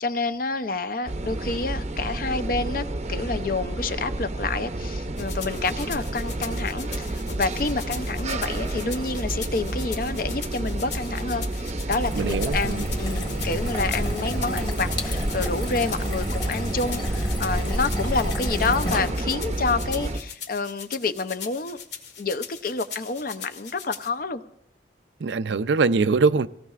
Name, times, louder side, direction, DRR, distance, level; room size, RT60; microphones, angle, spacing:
voice 1, 0.0-21.8 22.2-24.4, left 3 dB, 50° left, 0.6 m, -28 dB
sound 1, 1.1-20.2, right 2 dB, 40° right, 0.6 m, -30 dB
sound 2, 5.2-24.1, left 7 dB, 80° left, 1.7 m, -40 dB
sound 3, 11.9-19.5, left 1 dB, 25° left, 1.6 m, -31 dB
voice 2, 12.1-12.9 25.2-26.5, right 4 dB, 85° right, 0.5 m, -22 dB
25.0 x 17.5 x 2.4 m
head